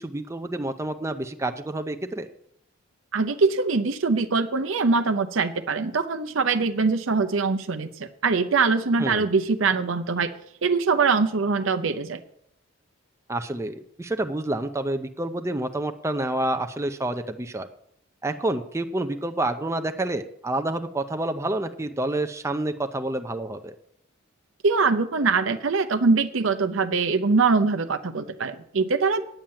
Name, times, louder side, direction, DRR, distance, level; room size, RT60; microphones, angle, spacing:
voice 1, 0.0-2.3 9.0-9.3 13.3-17.7 18.2-23.8, right 1 dB, 15° right, 7 dB, 0.5 m, -28 dB
voice 2, 3.1-10.3 10.6-12.2 24.6-29.2, right 4 dB, 70° right, 9 dB, 0.7 m, -23 dB
8.9 x 7.2 x 8.7 m, 0.73 s
head